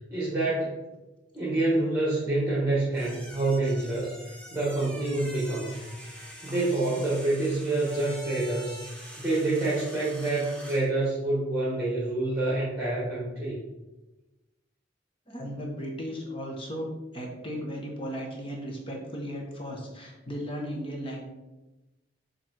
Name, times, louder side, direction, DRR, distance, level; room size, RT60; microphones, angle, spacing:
voice 1, 0.1-0.8 1.3-5.8 6.4-8.8 9.2-13.6, right 2 dB, 15° right, -6 dB, 1.5 m, -27 dB
sound 1, 2.9-10.9, equal, 5° left, 1.3 m, -45 dB
voice 2, 6.5-6.8 15.3-21.2, equal, 30° left, 0 dB, 1.3 m, -36 dB
7.1 x 3.4 x 4.4 m, 1.1 s
head